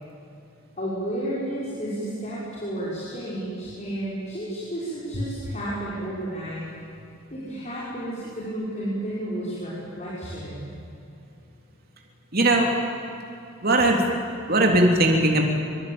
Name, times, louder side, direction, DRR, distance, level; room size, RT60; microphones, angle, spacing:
voice 1, 0.8-6.7 7.3-10.7, right 1 dB, 35° left, -8 dB, 5.8 m, -32 dB
voice 2, 12.3-12.7 13.6-14.0 14.5-15.4, right 1 dB, 45° right, 2 dB, 3.4 m, -19 dB
25.0 x 24.5 x 8.9 m, 2.6 s
head